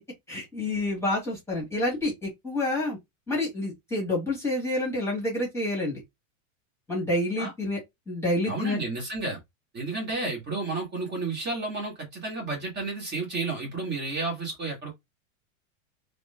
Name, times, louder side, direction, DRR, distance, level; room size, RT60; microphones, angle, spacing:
voice 1, 0.3-3.0 3.3-6.0 6.9-7.8 8.1-8.8, left 1 dB, 5° left, 1.4 m, -28 dB
voice 2, 8.5-9.4 9.7-14.9, right 3 dB, 25° right, 1.6 m, -31 dB
3.6 x 2.2 x 2.3 m
supercardioid pair, 140°, 40 cm